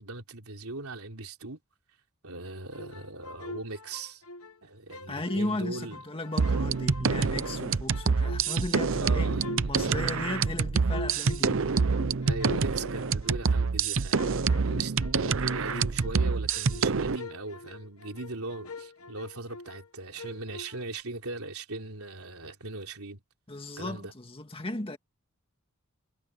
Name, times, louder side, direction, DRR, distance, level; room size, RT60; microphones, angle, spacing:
voice 1, 0.0-1.6 2.2-4.2 4.6-6.0 9.0-9.5 12.2-23.2 23.8-24.1, right 2 dB, 85° right, 3.5 m, -39 dB
sound 1, 2.7-4.6 4.9-7.6 7.9-13.7 14.1-19.9 20.1-21.0, left 2 dB, 80° left, 1.2 m, -44 dB
voice 2, 5.1-9.3 9.6-11.7 23.5-25.0, left 1 dB, 25° left, 2.0 m, -35 dB
beatdown mgreel, 6.4-17.2, right 5 dB, 65° right, 0.7 m, -27 dB
head